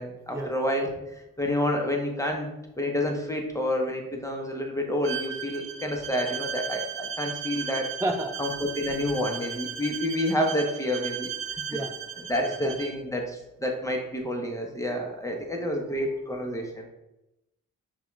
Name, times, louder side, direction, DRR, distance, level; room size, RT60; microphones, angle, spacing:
voice 1, 0.0-2.5 2.8-7.9 8.4-11.3 11.7-11.8 12.3-16.9, left 1 dB, 10° left, 1 dB, 1.0 m, -29 dB
Bowed string instrument, 5.0-13.0, right 8 dB, 75° right, 0.6 m, -36 dB
voice 2, 8.0-8.3 11.7-11.9 12.4-12.8, right 1 dB, 10° right, 5 dB, 0.4 m, -30 dB
5.5 x 2.5 x 3.3 m, 0.94 s
supercardioid pair, 45°, 35 cm